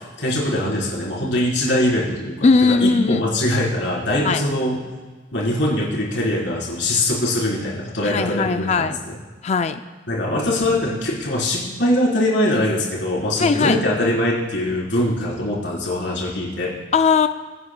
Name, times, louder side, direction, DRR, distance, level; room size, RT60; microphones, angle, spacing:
voice 1, 0.0-4.8 5.3-9.2 10.1-16.8, left 1 dB, 70° left, -5 dB, 4.0 m, -22 dB
voice 2, 2.4-3.2 4.2-4.4 8.0-9.0 9.4-9.8 13.4-13.8 16.9-17.3, left 4 dB, 35° left, 9 dB, 0.4 m, -18 dB
23.5 x 9.8 x 2.3 m, 1.3 s
head